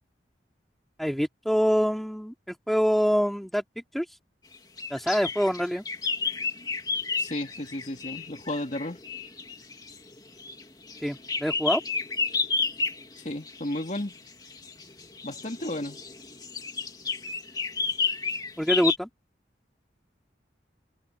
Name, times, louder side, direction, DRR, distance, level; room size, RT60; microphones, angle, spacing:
voice 1, 1.0-3.6 3.9-4.0 4.9-5.8 11.0-11.8 18.6-19.1, equal, ahead, 2.6 m, -25 dB
sound 1, 4.5-19.0, left 5 dB, 20° left, 2.5 m, -32 dB
voice 2, 7.2-9.0 13.2-14.1 15.2-16.0, left 1 dB, 40° left, 2.7 m, -33 dB
head